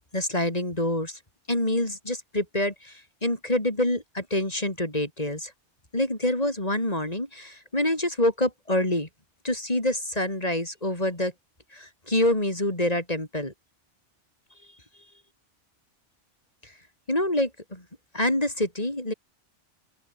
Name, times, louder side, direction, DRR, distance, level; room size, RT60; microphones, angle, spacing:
voice 1, 0.1-1.2 1.5-2.9 3.2-5.5 5.9-9.1 9.4-11.3 11.7-13.5 17.1-17.8 18.1-19.1, left 1 dB, 35° left, 4.9 m, -26 dB
open air
omnidirectional pair, 1.2 m